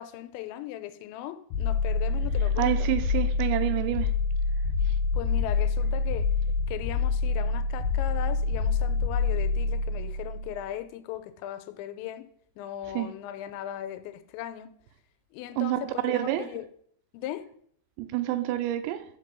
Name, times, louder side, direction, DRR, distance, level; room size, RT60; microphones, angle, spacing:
voice 1, 0.0-2.9 5.1-6.3 6.7-12.3 12.6-14.7 15.3-16.7 17.1-17.5, left 12 dB, 85° left, 2.9 m, -38 dB
sound 1, 1.5-10.6, left 4 dB, 65° left, 2.5 m, -26 dB
voice 2, 2.6-4.1 12.9-13.1 15.6-16.5 18.0-19.0, right 14 dB, 85° right, 2.8 m, -28 dB
5.9 x 5.6 x 6.8 m
omnidirectional pair, 5.1 m